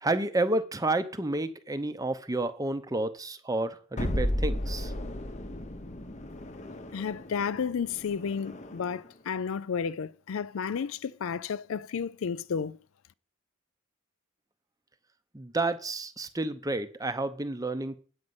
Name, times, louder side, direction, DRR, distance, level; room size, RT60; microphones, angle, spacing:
voice 1, 0.0-4.9 15.3-18.0, right 2 dB, 15° right, 0.7 m, -30 dB
sound 1, 4.0-9.1, left 1 dB, 30° left, 0.7 m, -34 dB
voice 2, 6.9-12.8, left 6 dB, 65° left, 0.4 m, -32 dB
8.7 x 5.4 x 7.9 m
head